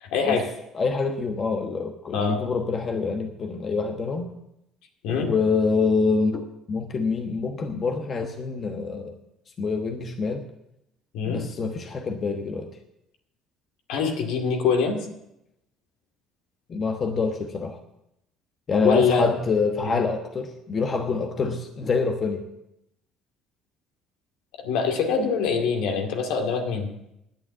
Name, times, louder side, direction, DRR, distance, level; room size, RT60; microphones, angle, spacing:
voice 1, 0.0-0.5 2.1-2.4 5.0-5.3 11.1-11.4 13.9-15.0 18.8-19.2 19.8-20.0 24.6-26.9, left 5 dB, 75° left, 3 dB, 2.2 m, -24 dB
voice 2, 0.7-4.3 5.1-9.2 9.6-10.5 11.2-12.7 16.7-17.8 18.7-22.5, left 4 dB, 40° left, 5 dB, 1.2 m, -26 dB
10.5 x 8.7 x 8.1 m, 0.84 s
supercardioid pair, 80°, 0 cm